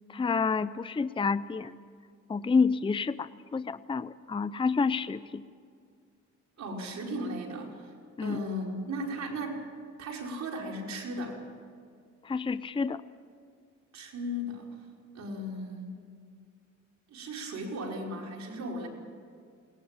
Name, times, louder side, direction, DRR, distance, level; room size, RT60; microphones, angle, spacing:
voice 1, 0.1-1.8 2.3-5.4 8.2-8.4 12.2-13.0, left 5 dB, 15° left, 15 dB, 0.6 m, -29 dB
voice 2, 6.6-7.9 8.2-9.7 10.0-11.4 13.9-14.7 15.1-16.0 17.1-18.9, equal, 65° right, 0 dB, 5.0 m, -36 dB
21.5 x 19.0 x 8.9 m, 2.2 s
cardioid pair, 90°, 30 cm